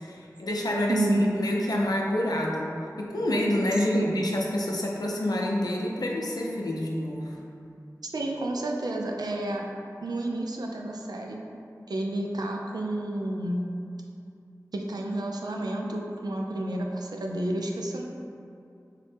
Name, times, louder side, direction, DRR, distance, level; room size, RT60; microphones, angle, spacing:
voice 1, 0.0-2.7 3.0-7.4, left 1 dB, 75° left, -2 dB, 0.4 m, -28 dB
voice 2, 0.9-1.3 3.9-4.3 8.1-9.6 10.0-11.4 11.9-13.6 14.7-18.0, right 1 dB, 85° right, 0 dB, 0.3 m, -30 dB
4.0 x 2.1 x 3.2 m, 2.5 s
wide cardioid pair, 45°, 7 cm